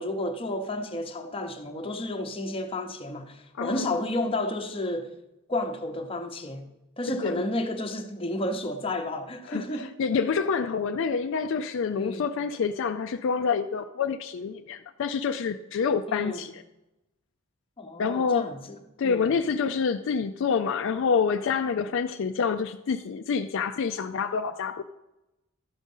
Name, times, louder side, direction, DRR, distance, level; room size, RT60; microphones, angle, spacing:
voice 1, 0.0-5.1 5.5-6.7 7.0-9.9 12.0-12.3 16.1-16.4 17.8-19.3, left 1 dB, 25° left, 0.8 m, -31 dB
voice 2, 3.5-4.0 7.2-7.4 9.5-16.6 18.0-18.4 19.0-24.8, left 5 dB, 60° left, 0.4 m, -27 dB
12.0 x 5.2 x 5.4 m
head